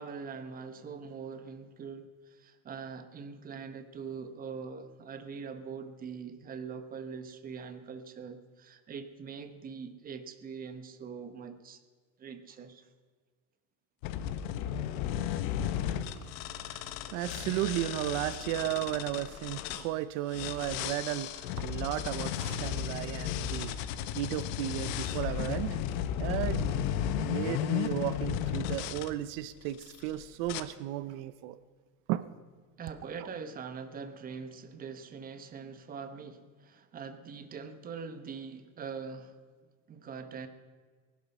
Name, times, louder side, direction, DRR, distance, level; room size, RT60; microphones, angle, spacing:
voice 1, 0.0-11.8 12.2-12.9 32.8-39.3 39.9-40.5, right 6 dB, 20° right, 9 dB, 1.0 m, -43 dB
sound 1, 14.0-19.9 20.3-29.1 29.7-30.1 30.5-30.6, left 10 dB, 70° left, 1.2 m, -34 dB
voice 2, 16.6-23.7 24.1-25.8 26.2-26.8 27.2-31.6 32.1-32.3, right 14 dB, 70° right, 15 dB, 0.7 m, -34 dB
20.0 x 11.5 x 5.4 m, 1.6 s
cardioid pair, 160°, 40 cm